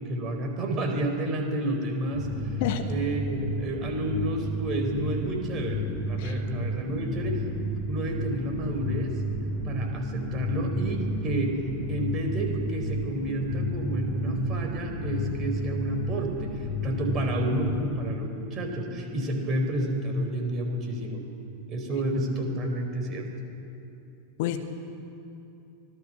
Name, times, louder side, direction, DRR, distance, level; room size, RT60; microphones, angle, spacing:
voice 1, 0.0-2.3 2.9-7.4 7.9-9.1 9.6-11.5 11.9-21.2 21.7-23.3, right 1 dB, 30° right, 3 dB, 4.4 m, -30 dB
sound 1, 2.1-17.8, equal, 5° left, 5.7 m, -32 dB
voice 2, 2.6-2.9 6.2-6.4 24.4-24.6, left 11 dB, 50° left, 7 dB, 1.5 m, -29 dB
24.5 x 18.0 x 7.6 m, 2.8 s
figure-of-eight pair, 90°, 0 cm